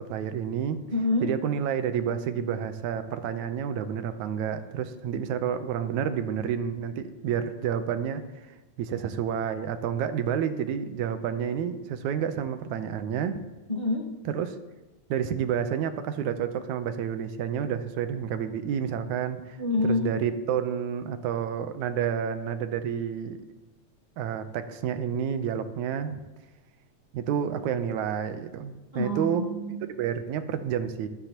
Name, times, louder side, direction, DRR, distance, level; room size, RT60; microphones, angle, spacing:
voice 1, 0.0-0.8 1.2-8.2 8.8-13.4 14.3-14.6 15.1-23.4 24.2-26.2 27.1-29.5 29.8-31.1, right 8 dB, 80° right, 9 dB, 2.1 m, -29 dB
voice 2, 0.9-1.3 13.7-14.1 19.6-20.2 28.9-29.8, left 2 dB, 70° left, -4 dB, 0.4 m, -27 dB
14.5 x 12.5 x 2.9 m, 1.2 s
omnidirectional pair, 3.4 m